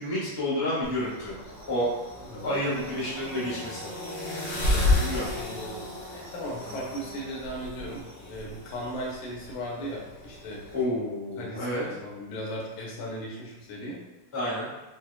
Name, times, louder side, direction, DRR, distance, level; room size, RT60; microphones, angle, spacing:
voice 1, 0.0-1.3 1.7-1.9 2.4-3.9 5.0-5.3 10.7-11.8 14.3-14.7, left 1 dB, 35° left, -8 dB, 0.4 m, -29 dB
sound 1, 0.8-10.8, left 2 dB, 55° left, 2.0 m, -33 dB
voice 2, 2.2-2.6 4.6-10.6 11.4-14.0, equal, 80° left, -3 dB, 2.3 m, -37 dB
6.2 x 2.1 x 2.3 m, 1.0 s
omnidirectional pair, 3.4 m